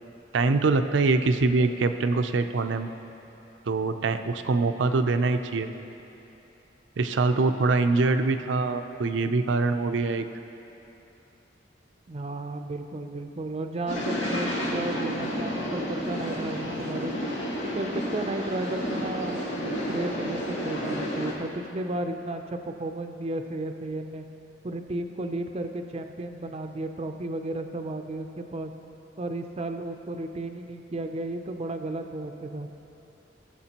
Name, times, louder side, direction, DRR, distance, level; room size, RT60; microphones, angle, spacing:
voice 1, 0.3-2.9 3.7-5.7 7.0-10.2, right 3 dB, 90° right, 9 dB, 0.5 m, -24 dB
voice 2, 12.1-17.2 17.6-24.3 24.6-28.7 29.2-32.7, right 2 dB, 35° right, 6 dB, 0.5 m, -33 dB
sound 1, 13.9-21.3, equal, 85° left, 1.8 m, -31 dB
17.5 x 7.3 x 2.9 m, 2.9 s
head